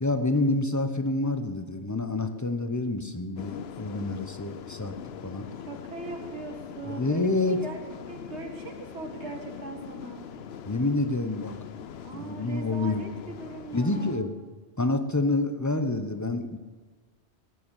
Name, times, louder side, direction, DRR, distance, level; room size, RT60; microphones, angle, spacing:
voice 1, 0.0-4.9 5.2-5.5 6.8-7.6 10.7-11.6 12.1-13.1 13.7-14.3 14.8-16.6, left 2 dB, 15° left, 8 dB, 0.9 m, -27 dB
sound 1, 3.4-14.2, left 7 dB, 70° left, 0.9 m, -42 dB
voice 2, 5.7-7.8 8.1-10.3 12.0-14.3, right 3 dB, 90° right, 2 dB, 2.3 m, -40 dB
17.5 x 9.3 x 7.3 m, 1.4 s
omnidirectional pair, 1.1 m